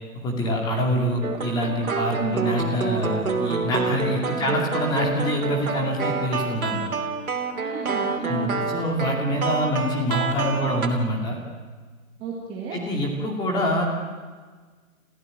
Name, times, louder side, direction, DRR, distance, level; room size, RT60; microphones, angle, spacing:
voice 1, 0.2-6.8 8.3-11.4 12.7-13.8, equal, 10° left, 1 dB, 2.7 m, -25 dB
sound 1, 1.2-10.9, right 4 dB, 80° right, 3.3 m, -28 dB
voice 2, 2.2-2.5 4.4-4.6 7.5-8.5 12.2-12.8, right 5 dB, 10° right, -2 dB, 1.8 m, -32 dB
27.0 x 15.0 x 9.0 m, 1.5 s
hypercardioid pair, 165°, 42 cm